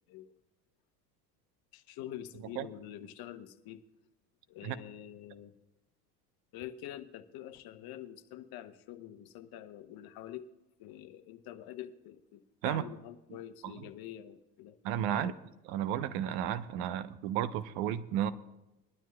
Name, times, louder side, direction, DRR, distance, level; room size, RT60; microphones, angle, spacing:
voice 1, 1.7-3.8 4.5-5.6 6.5-10.5 10.8-14.8 15.1-15.4, left 12 dB, 45° left, 11 dB, 1.0 m, -46 dB
voice 2, 14.8-15.3 15.7-18.3, right 10 dB, 55° right, 14 dB, 0.9 m, -32 dB
21.5 x 12.0 x 2.3 m, 0.97 s
hypercardioid pair, 80°, 50 cm